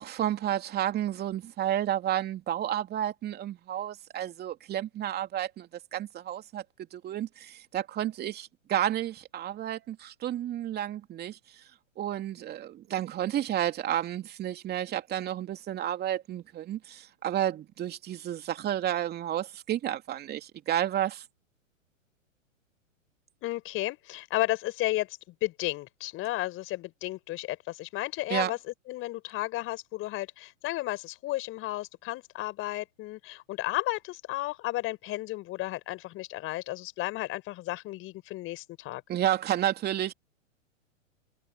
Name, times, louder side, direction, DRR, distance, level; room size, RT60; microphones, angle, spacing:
voice 1, 0.0-6.6 6.9-11.6 12.0-21.2 28.3-28.5 39.1-40.1, right 11 dB, 25° right, 2.9 m, -31 dB
voice 2, 23.4-28.6 28.9-39.0, left 17 dB, 30° left, 5.3 m, -33 dB
figure-of-eight pair, 110°, 39 cm